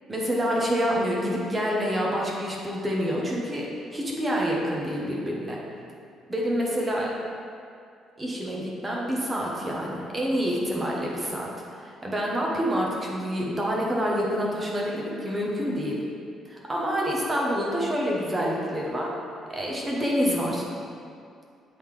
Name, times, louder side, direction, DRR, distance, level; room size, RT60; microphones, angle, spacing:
voice 1, 0.1-5.6 6.3-7.1 8.2-11.5 11.8-16.0 16.5-19.1 19.5-20.7, equal, 20° right, -3 dB, 1.0 m, -27 dB
7.7 x 3.7 x 3.3 m, 2.3 s
cardioid pair, 115°, 0 cm